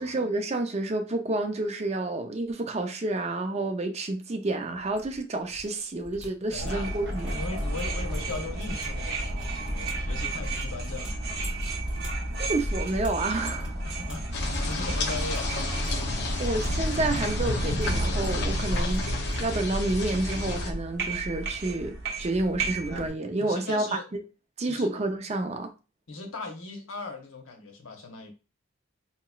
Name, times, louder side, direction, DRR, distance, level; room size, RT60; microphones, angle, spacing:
voice 1, 0.0-7.4 12.4-13.7 16.0-19.0 19.4-24.0 24.6-25.7, right 2 dB, 30° right, 0.5 m, -29 dB
sound 1, 4.8-5.7 5.9-14.9 15.1-15.4 15.7-16.7 17.0-17.8 18.1-19.0 19.2-19.6 19.8-20.0, equal, 5° right, 1.3 m, -43 dB
voice 2, 6.5-6.9 7.3-11.2 13.8-15.5 18.7-18.9 23.4-24.0 24.7-24.9 26.1-28.3, left 3 dB, 80° left, 0.9 m, -38 dB
sound 2, 6.6-23.1, right 2 dB, 50° right, 0.9 m, -33 dB
sound 3, 14.3-20.7, left 1 dB, 55° left, 0.7 m, -29 dB
4.2 x 2.9 x 2.3 m
head